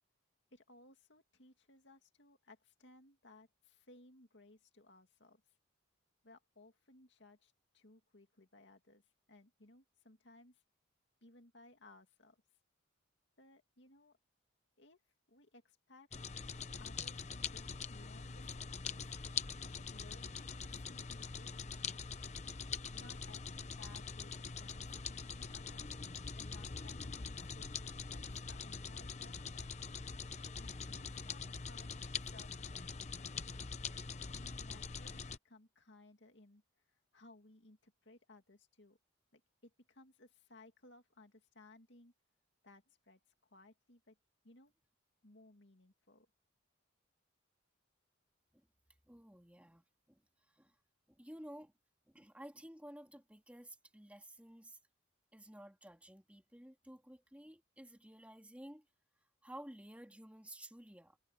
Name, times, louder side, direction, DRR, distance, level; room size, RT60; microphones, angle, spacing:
voice 1, 0.5-5.4 6.2-9.0 9.3-10.6 11.2-12.4 13.4-14.2 14.8-15.0 15.3-16.3 16.8-19.1 19.6-21.8 22.9-25.9 26.4-29.7 30.6-33.4 34.3-36.6 36.9-39.0 39.3-42.1 42.6-44.2 44.4-44.7 45.2-46.3, left 2 dB, 60° left, 2.5 m, -62 dB
sound 1, 16.1-35.4, left 5 dB, 35° left, 0.8 m, -44 dB
voice 2, 49.0-50.2 50.5-50.8 51.1-51.7 52.1-54.8 55.3-58.8 59.4-61.2, right 1 dB, 5° right, 2.7 m, -53 dB
head